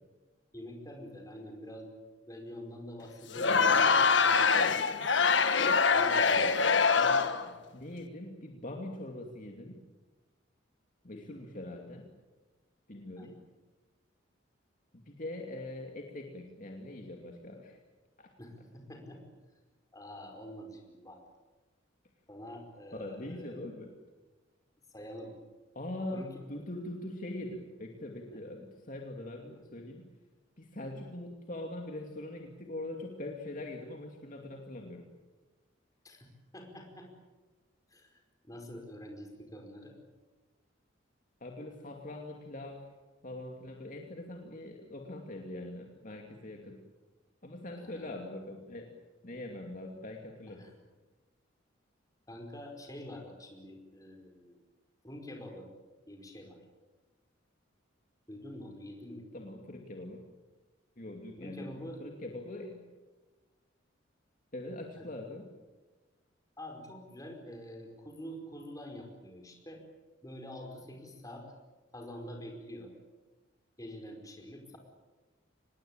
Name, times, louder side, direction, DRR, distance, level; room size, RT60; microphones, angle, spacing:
voice 1, 0.5-1.9 2.2-5.0 5.9-6.6 11.1-11.4 13.2-13.4 18.4-19.2 19.9-21.2 22.3-23.6 24.9-25.3 26.1-26.4 36.0-36.3 36.5-37.1 37.9-38.2 38.4-39.9 47.7-48.1 50.6-50.7 52.3-54.6 55.0-55.7 56.1-56.6 58.3-59.3 61.4-62.0 65.0-65.1 66.6-69.8 70.2-71.5 71.9-72.9 73.8-74.8, equal, 20° left, 2 dB, 5.0 m, -46 dB
Crowd, 3.3-7.5, left 5 dB, 65° left, 1.5 m, -24 dB
voice 2, 7.7-9.8 11.0-12.1 12.9-13.4 14.9-17.8 18.2-18.3 22.9-23.9 25.7-30.0 30.6-35.1 41.4-42.8 43.2-46.8 47.4-48.9 49.2-50.6 59.3-60.2 61.0-62.9 64.5-65.5, left 1 dB, 45° left, 2 dB, 2.5 m, -42 dB
26.0 x 20.5 x 9.0 m, 1.2 s
head